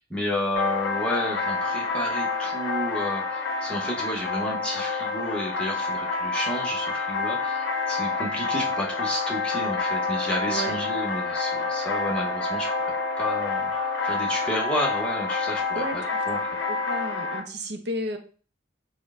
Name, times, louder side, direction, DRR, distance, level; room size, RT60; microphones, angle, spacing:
voice 1, 0.0-13.7 14.0-16.0 16.3-16.4, left 1 dB, 5° left, -4 dB, 0.8 m, -31 dB
sound 1, 0.6-17.4, left 3 dB, 70° left, 0.6 m, -28 dB
voice 2, 10.5-10.8 15.7-16.2 16.7-18.2, equal, 55° right, 6 dB, 0.6 m, -32 dB
4.4 x 2.1 x 3.5 m, 0.40 s
head